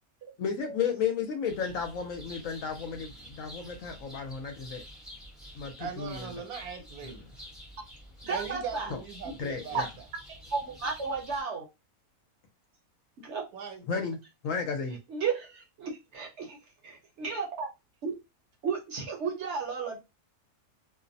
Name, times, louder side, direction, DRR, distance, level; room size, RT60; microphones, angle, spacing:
voice 1, 0.4-4.8 5.5-6.3 7.0-7.2 8.9-9.0 9.4-9.9 13.9-14.2 14.4-15.0, left 6 dB, 70° left, 0.9 m, -33 dB
sound 1, 1.4-11.4, equal, ahead, 0.6 m, -48 dB
voice 2, 5.8-7.2 8.3-9.8 13.5-13.8, right 6 dB, 75° right, 1.1 m, -39 dB
voice 3, 8.2-8.9 9.7-9.8 10.5-11.7 13.2-13.5 15.1-16.6 16.8-17.7 18.0-18.1 18.6-20.0, right 5 dB, 60° right, 0.8 m, -33 dB
2.5 x 2.1 x 2.5 m
omnidirectional pair, 1.6 m